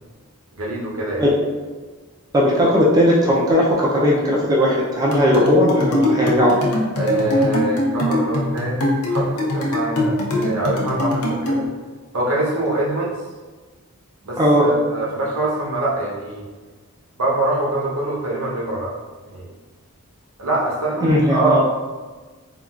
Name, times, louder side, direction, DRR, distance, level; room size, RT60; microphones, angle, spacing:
voice 1, 0.5-1.3 7.0-11.6 12.1-13.1 14.2-16.4 17.2-19.0 19.3-19.5 20.4-21.6, right 2 dB, 75° right, -3 dB, 0.8 m, -24 dB
voice 2, 2.3-6.5 14.4-14.7 21.0-21.6, equal, 15° right, -4 dB, 0.3 m, -17 dB
sound 1, 5.1-11.7, left 1 dB, 80° left, 0.6 m, -22 dB
3.6 x 2.2 x 2.3 m, 1.3 s
head